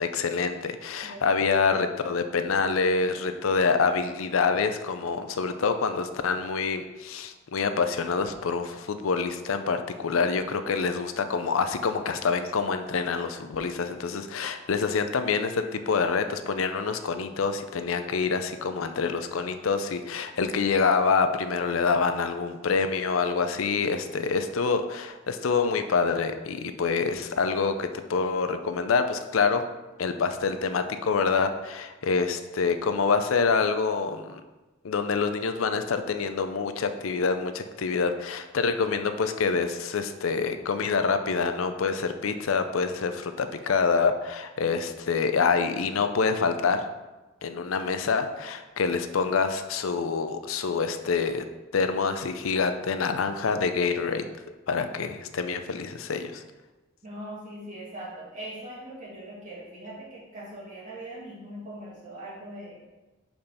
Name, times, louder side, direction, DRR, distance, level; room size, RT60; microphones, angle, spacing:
voice 1, 0.0-29.6 30.0-34.4 34.8-46.8 47.4-51.4 51.7-54.2 54.7-56.4, left 5 dB, 90° left, 9 dB, 0.5 m, -26 dB
voice 2, 1.0-1.6 57.0-62.8, right 1 dB, 40° right, -6 dB, 2.3 m, -41 dB
5.3 x 4.4 x 5.5 m, 1.1 s
head